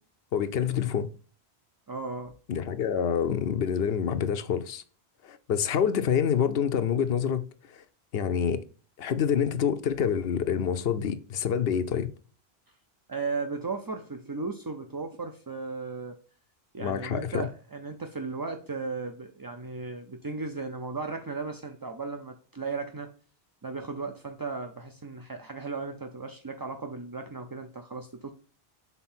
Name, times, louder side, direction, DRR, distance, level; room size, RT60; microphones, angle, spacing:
voice 1, 0.3-1.1 2.5-4.8 5.2-7.8 8.1-8.6 9.0-12.1 16.8-17.5, left 8 dB, 70° left, 0.9 m, -27 dB
voice 2, 1.9-2.3 13.1-16.2 16.7-23.1 23.6-28.3, right 4 dB, 35° right, 0.4 m, -36 dB
5.7 x 3.9 x 4.3 m
omnidirectional pair, 1.1 m